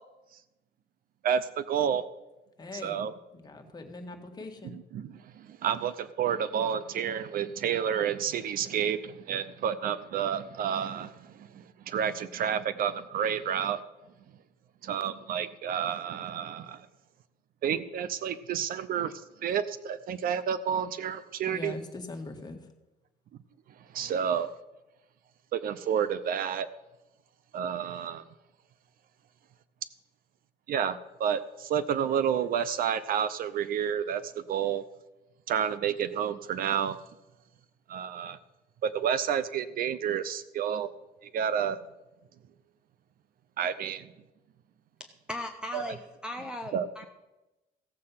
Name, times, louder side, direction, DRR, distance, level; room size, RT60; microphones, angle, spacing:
voice 1, 1.2-2.0 2.7-3.1 4.6-13.8 14.8-16.9 17.6-21.8 23.7-24.5 25.5-26.7 27.5-28.3 30.7-34.8 35.5-37.0 37.9-38.4 38.8-40.9 41.2-41.8 43.6-44.1 45.7-45.9 46.7-46.9, right 8 dB, 60° right, 15 dB, 0.6 m, -30 dB
voice 2, 2.6-2.9 3.3-4.8 21.5-22.6, left 2 dB, 25° left, 4 dB, 1.8 m, -41 dB
voice 3, 45.3-47.1, left 1 dB, 5° right, 6 dB, 0.9 m, -37 dB
15.5 x 7.6 x 5.7 m, 1.0 s
cardioid pair, 110°, 17 cm